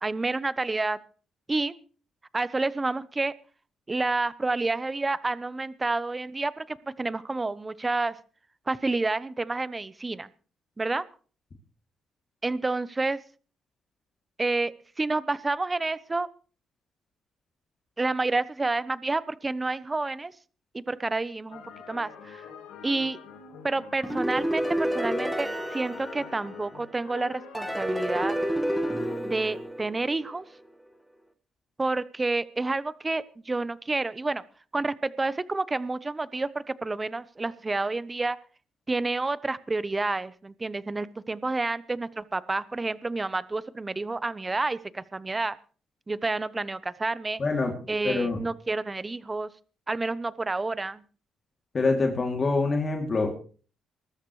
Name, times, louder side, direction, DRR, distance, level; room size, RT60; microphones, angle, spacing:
voice 1, 0.0-1.0 1.5-1.8 2.3-3.3 3.9-8.2 8.7-10.3 10.8-11.0 12.4-13.2 14.4-16.3 18.0-20.3 20.7-22.5 22.8-23.2 23.6-28.3 29.2-30.4 31.8-34.4 34.7-38.4 38.9-45.6 46.1-47.4 47.9-49.5 49.9-51.0, right 3 dB, 20° right, 16 dB, 0.9 m, -29 dB
sound 1, 21.5-29.6, left 6 dB, 85° left, 2.5 m, -45 dB
sound 2, 24.0-26.9 27.5-30.4, equal, ahead, 1.6 m, -30 dB
voice 2, 47.4-47.7 48.0-48.4 51.7-53.3, left 3 dB, 35° left, 2 dB, 2.8 m, -25 dB
22.5 x 13.5 x 3.2 m, 0.40 s
cardioid pair, 90°, 0 cm